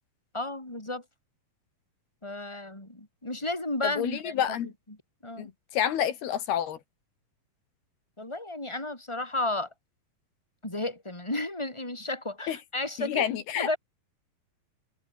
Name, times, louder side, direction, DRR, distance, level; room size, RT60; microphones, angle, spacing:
voice 1, 0.3-1.0 2.2-4.3 5.2-5.5 8.2-9.7 10.6-13.2 13.6-13.8, left 2 dB, 5° left, 5.8 m, -33 dB
voice 2, 3.8-4.7 5.4-6.8 12.5-12.6 13.0-13.8, left 10 dB, 85° left, 4.0 m, -29 dB
omnidirectional pair, 4.4 m